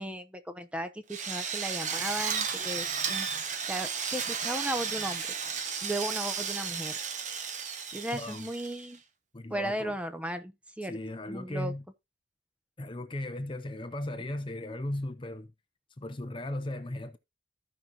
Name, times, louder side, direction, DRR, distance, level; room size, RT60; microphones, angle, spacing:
voice 1, 0.0-3.3 3.7-5.2 5.8-7.0 7.9-9.0 9.5-11.0 11.3-11.7, right 1 dB, 5° right, 0.8 m, -36 dB
Drill, 1.1-9.0, right 6 dB, 40° right, 1.0 m, -34 dB
voice 2, 8.1-8.5 9.3-9.9 10.8-11.8 12.8-15.5 16.0-17.2, left 1 dB, 25° left, 0.6 m, -36 dB
14.0 x 5.4 x 2.9 m
head